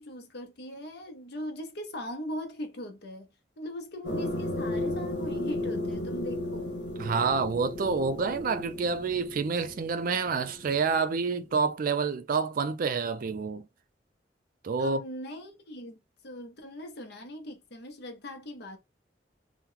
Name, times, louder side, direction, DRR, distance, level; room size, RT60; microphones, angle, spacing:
voice 1, 0.0-6.7 14.8-18.8, left 1 dB, 65° left, 0.8 m, -40 dB
sound 1, 4.0-11.2, left 1 dB, 80° left, 1.3 m, -34 dB
voice 2, 7.0-13.7 14.6-15.0, right 5 dB, 50° right, 0.4 m, -28 dB
2.9 x 2.1 x 3.7 m
head